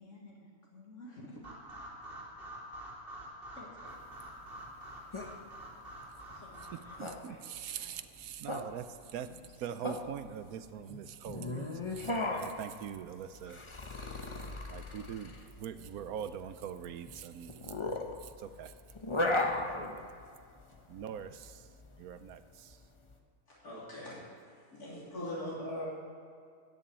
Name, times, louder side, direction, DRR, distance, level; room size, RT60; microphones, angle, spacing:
voice 1, 0.0-1.4 2.0-2.5 3.6-3.9 6.3-8.0 9.3-9.4 9.8-10.0 10.2-10.9, left 2 dB, 55° left, -3 dB, 2.1 m, -54 dB
sound 1, 1.4-7.0, right 1 dB, 40° right, 3.2 m, -47 dB
sound 2, 3.9-23.1, left 2 dB, 25° left, 0.8 m, -38 dB
voice 2, 6.7-9.3 9.6-13.6 13.9-14.3 14.7-17.8 18.2-18.8 19.3-20.1 20.9-22.9, right 9 dB, 75° right, 12 dB, 1.1 m, -43 dB
voice 3, 23.6-25.9, left 1 dB, 80° left, -8 dB, 3.7 m, -41 dB
13.5 x 7.2 x 9.1 m, 2.2 s
omnidirectional pair, 1.6 m